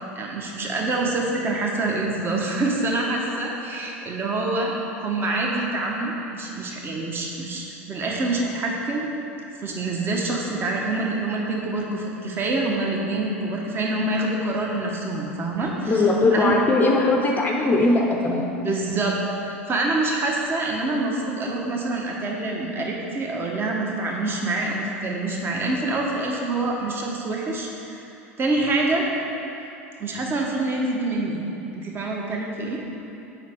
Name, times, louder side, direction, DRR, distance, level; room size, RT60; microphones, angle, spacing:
voice 1, 0.1-4.7 5.0-9.1 9.6-16.0 16.3-16.5 18.6-19.2 19.4-28.0 28.4-29.1 30.0-31.5 31.7-32.8, right 2 dB, 30° right, -1 dB, 1.2 m, -26 dB
voice 2, 15.9-18.5, left 2 dB, 25° left, 0 dB, 0.6 m, -20 dB
7.3 x 5.0 x 4.5 m, 2.8 s
hypercardioid pair, 80°, 7 cm